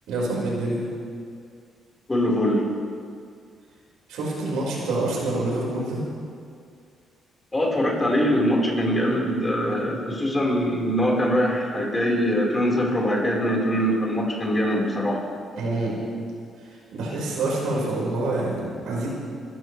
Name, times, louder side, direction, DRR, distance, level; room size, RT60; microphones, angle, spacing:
voice 1, 0.1-0.8 4.1-6.0 15.6-16.0 16.7-19.1, right 2 dB, 90° right, -4 dB, 5.2 m, -26 dB
voice 2, 2.1-2.6 7.5-15.2, equal, 20° left, -2 dB, 4.5 m, -23 dB
25.5 x 14.0 x 3.4 m, 2.2 s
cardioid pair, 90°, 0 cm